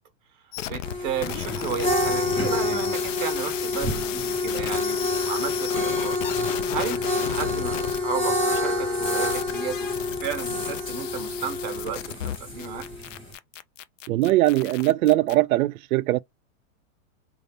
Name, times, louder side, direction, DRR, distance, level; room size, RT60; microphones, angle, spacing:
sound 1, 0.5-0.9 1.2-8.0 8.5-8.6 8.9-15.3, left 12 dB, 65° left, 0.5 m, -34 dB
voice 1, 0.7-9.9 10.2-12.9, right 7 dB, 35° right, 1.0 m, -33 dB
sound 2, 0.8-13.3, left 2 dB, 15° left, 1.2 m, -28 dB
voice 2, 14.1-16.2, right 16 dB, 90° right, 0.5 m, -21 dB
4.0 x 2.4 x 3.4 m
supercardioid pair, 175°, 41 cm